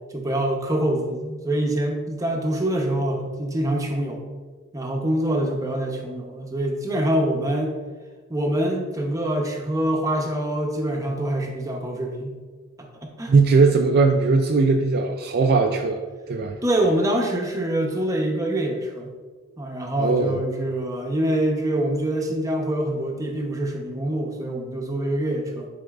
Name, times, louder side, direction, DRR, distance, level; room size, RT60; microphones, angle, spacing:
voice 1, 0.0-4.2 4.7-7.7 8.3-12.4 12.8-13.4 16.6-19.1 19.6-25.7, right 1 dB, 15° right, 1 dB, 0.7 m, -25 dB
voice 2, 13.3-16.0 16.3-16.6 20.0-20.3, right 4 dB, 45° right, 3 dB, 0.4 m, -19 dB
9.2 x 4.3 x 2.4 m, 1.4 s
head